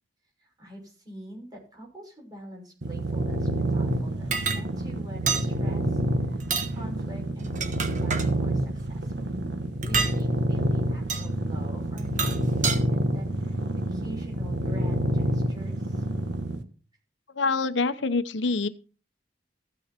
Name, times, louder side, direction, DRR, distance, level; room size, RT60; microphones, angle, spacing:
voice 1, 0.4-9.3 9.8-13.6 13.9-16.0, right 1 dB, 20° right, -1 dB, 6.6 m, -44 dB
sound 1, 2.8-16.6, right 1 dB, 70° right, 1.5 m, -28 dB
sound 2, 4.3-4.6 5.3-5.5 6.4-6.7 7.4-8.3 9.8-10.2 11.1-11.3 12.0-12.8, right 5 dB, 45° right, 1.4 m, -28 dB
voice 2, 17.3-18.7, left 3 dB, 85° left, 12 dB, 0.8 m, -25 dB
15.0 x 9.3 x 4.4 m, 0.37 s
head